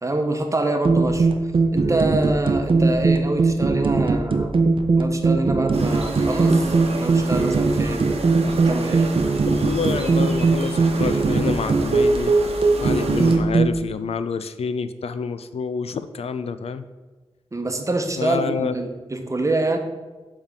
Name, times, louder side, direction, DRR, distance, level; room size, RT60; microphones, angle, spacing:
voice 1, 0.0-1.3 1.7-4.5 5.0-8.1 8.4-9.1 17.5-19.8, right 2 dB, 30° right, 5 dB, 0.9 m, -26 dB
sound 1, 0.8-13.7, right 3 dB, 55° right, 0.6 m, -20 dB
sound 2, 5.7-13.4, right 3 dB, 75° right, 1.0 m, -32 dB
voice 2, 9.5-12.3 12.8-16.8 18.2-18.7, left 5 dB, 70° left, 12 dB, 0.4 m, -28 dB
7.2 x 3.6 x 5.2 m, 1.2 s
cardioid pair, 60°, 11 cm